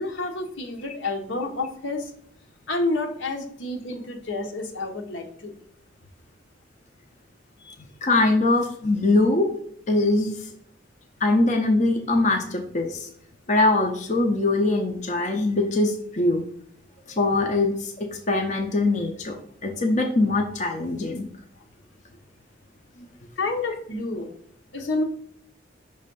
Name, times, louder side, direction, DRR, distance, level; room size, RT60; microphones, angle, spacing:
voice 1, 0.0-2.1 2.7-5.6 7.6-7.7 23.4-24.3 24.7-25.0, left 2 dB, 75° left, 3 dB, 1.0 m, -29 dB
voice 2, 8.0-9.5 9.9-10.4 11.2-13.1 13.5-16.4 17.1-19.4 19.6-21.3, left 2 dB, 40° left, 2 dB, 0.7 m, -22 dB
5.6 x 3.2 x 5.3 m, 0.67 s
head